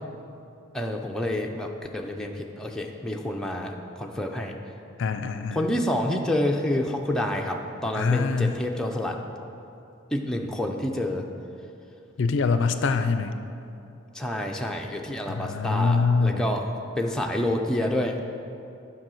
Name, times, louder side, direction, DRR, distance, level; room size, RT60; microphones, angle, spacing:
voice 1, 0.7-4.5 5.5-9.2 10.1-11.3 14.1-18.2, left 1 dB, 5° left, 0 dB, 0.5 m, -28 dB
voice 2, 5.0-5.6 7.9-8.6 12.2-13.3 15.3-16.5, left 4 dB, 60° left, 9 dB, 0.4 m, -24 dB
10.5 x 4.8 x 6.2 m, 2.7 s
head